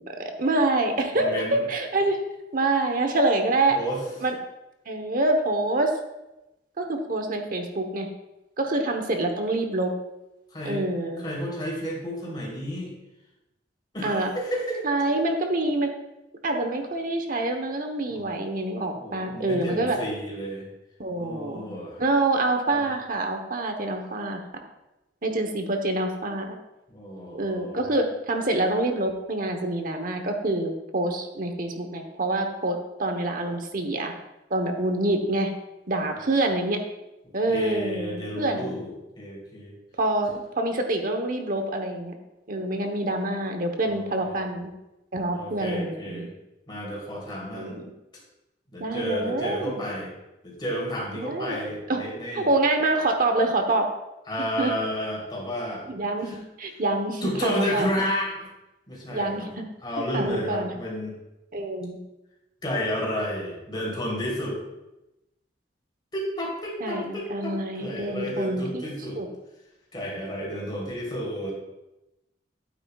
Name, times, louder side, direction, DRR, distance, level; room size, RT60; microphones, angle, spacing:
voice 1, 0.0-2.2 2.5-3.8 4.2-4.4 4.9-6.0 6.8-8.1 8.6-9.9 10.6-11.2 14.0-14.3 14.8-15.9 16.4-20.0 21.0-21.6 22.0-24.4 25.2-26.6 27.3-34.1 34.5-35.5 35.9-36.8 37.3-38.8 40.0-42.1 42.5-44.7 45.1-46.3 47.5-47.8 48.8-49.8 51.2-51.6 51.9-52.0 52.3-53.9 54.6-54.7 55.9-57.9 59.1-59.6 60.1-60.7 61.5-62.0 66.8-68.9 69.2-69.3, right 2 dB, 50° right, 5 dB, 1.0 m, -26 dB
voice 2, 1.1-1.6 3.7-4.0 10.5-10.8 11.2-12.9 13.9-14.8 18.1-18.2 18.9-20.7 21.1-22.0 22.7-22.9 26.9-27.9 37.5-39.7 43.8-44.4 45.3-46.3 46.7-47.8 48.7-50.1 50.4-52.5 54.3-55.8 56.2-56.4 57.2-58.3 58.9-59.5 59.8-61.2 62.6-64.6 66.1-69.2 69.9-71.6, equal, 25° left, -4 dB, 3.4 m, -31 dB
12.0 x 9.3 x 2.4 m, 0.96 s
head